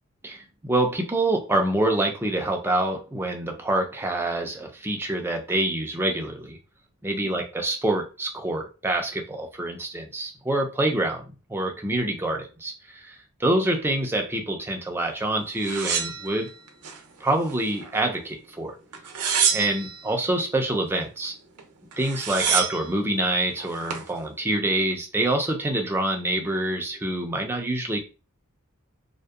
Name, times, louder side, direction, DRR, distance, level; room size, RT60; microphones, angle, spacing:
voice 1, 0.2-6.6 7.0-16.5 17.2-18.8 19.5-21.3 22.0-28.0, right 1 dB, 10° right, 2 dB, 0.4 m, -26 dB
sound 1, 15.6-17.0 17.4-18.2 18.9-20.0 21.6-21.7 21.9-22.9 23.6-24.1, right 7 dB, 90° right, 0.6 m, -27 dB
2.5 x 2.1 x 2.3 m, 0.33 s
head